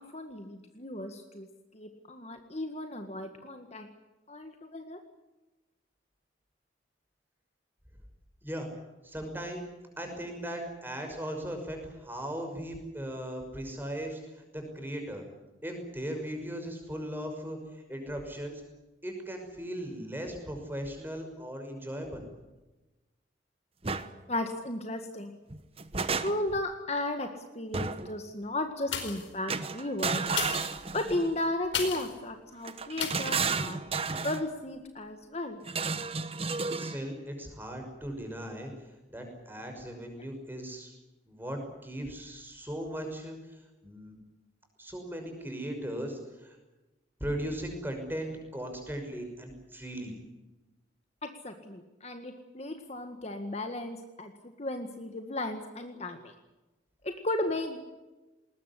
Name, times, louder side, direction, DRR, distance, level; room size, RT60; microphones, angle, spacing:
voice 1, 0.0-1.5 1.7-3.9 4.3-5.0 24.3-25.4 26.2-30.2 30.9-33.8 34.2-35.6 51.2-54.3 54.6-56.3 57.0-57.8, left 1 dB, 35° left, 6 dB, 1.8 m, -35 dB
voice 2, 9.0-9.6 10.0-15.2 15.6-18.6 19.0-22.3 36.7-38.7 39.1-40.9 41.3-43.4 43.8-44.1 44.8-46.6 47.2-50.1, equal, 10° right, 4 dB, 5.9 m, -38 dB
sound 1, 23.8-24.1 25.5-26.6 27.7-28.2 29.5-31.3 32.6-34.4 35.7-37.0, right 4 dB, 30° right, 1.1 m, -32 dB
sound 2, 28.8-29.4 30.2-32.2 33.0-33.4 33.9-34.0, left 7 dB, 85° left, 4.6 m, -35 dB
20.5 x 20.5 x 10.0 m, 1.1 s
head